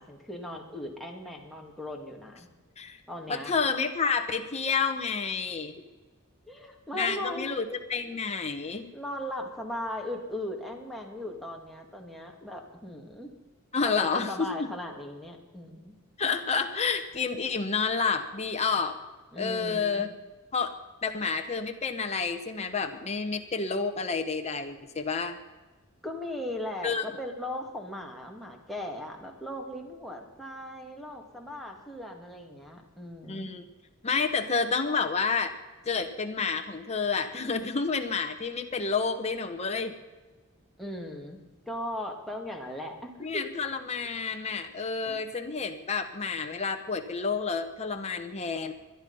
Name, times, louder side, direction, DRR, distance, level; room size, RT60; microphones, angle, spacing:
voice 1, 0.0-2.5 3.1-3.5 6.4-7.4 8.9-13.3 13.8-15.9 19.3-20.1 26.0-33.5 40.8-41.4 41.7-43.5 45.1-45.2, left 1 dB, ahead, 0 dB, 2.2 m, -38 dB
voice 2, 3.3-5.7 6.9-8.9 13.7-14.7 16.2-19.0 19.4-20.1 20.5-20.7 21.0-25.4 26.8-27.0 33.3-33.6 34.0-35.5 35.8-40.0 43.2-48.7, left 5 dB, 30° left, 5 dB, 1.1 m, -29 dB
21.0 x 12.0 x 5.6 m, 1.2 s
head